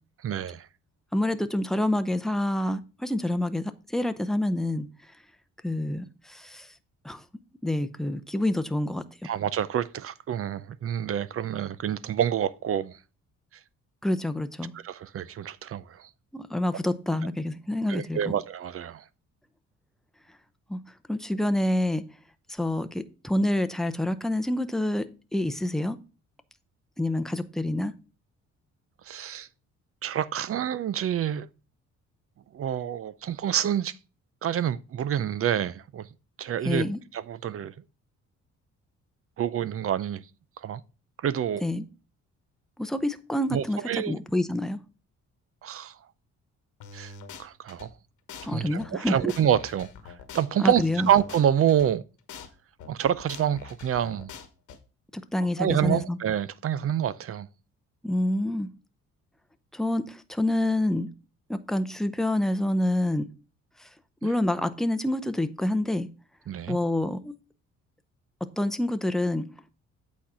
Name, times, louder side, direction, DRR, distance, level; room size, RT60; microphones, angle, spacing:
voice 1, 0.2-0.7 9.2-13.0 14.7-16.1 17.9-19.0 29.0-29.5 30.0-31.5 32.5-34.0 34.4-36.1 36.4-36.8 37.1-37.7 39.4-40.2 40.6-40.8 41.2-41.6 43.5-44.1 45.6-46.0 46.9-47.1 47.4-47.9 48.4-52.0 52.9-54.3 55.6-57.5 66.5-66.8, right 10 dB, 50° right, 0.5 m, -27 dB
voice 2, 1.1-4.9 5.6-6.7 7.0-7.2 7.6-9.0 14.0-14.7 16.3-18.2 20.7-20.8 21.1-22.0 22.5-25.1 25.3-26.0 27.0-27.9 36.6-37.0 41.6-41.8 42.8-44.8 48.5-49.3 50.6-51.1 55.1-56.2 58.0-58.7 59.7-61.1 61.5-63.3 63.8-63.9 64.2-66.1 66.7-67.3 68.4-69.5, left 1 dB, ahead, 0.7 m, -27 dB
sound 1, 46.8-47.9 48.3-48.5 48.8-51.9 52.3-52.5 52.8-54.8, left 5 dB, 80° left, 1.3 m, -44 dB
8.3 x 4.3 x 4.9 m
cardioid pair, 90°, 30 cm